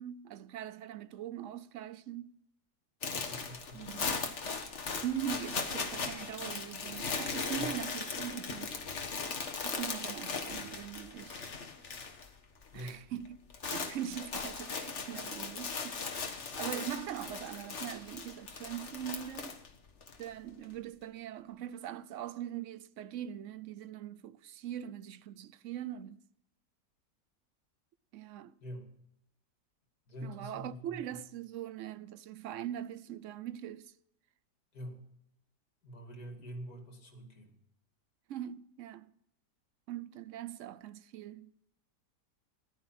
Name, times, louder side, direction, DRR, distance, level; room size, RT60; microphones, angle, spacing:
voice 1, 0.0-2.3 3.7-4.2 5.0-8.7 9.6-11.5 12.7-13.4 13.6-19.6 20.2-26.2 28.1-28.5 30.2-33.9 38.3-39.1 39.9-41.5, right 10 dB, 60° right, 0.8 m, -41 dB
sound 1, 3.0-12.3 12.6-12.9 13.2-20.2, left 4 dB, 45° left, 1.6 m, -38 dB
voice 2, 3.1-4.2 7.6-7.7 12.7-13.0 28.6-28.9 30.1-31.2 34.7-35.0 35.8-37.6, equal, 65° left, 3.1 m, -46 dB
14.5 x 11.5 x 6.0 m
omnidirectional pair, 1.8 m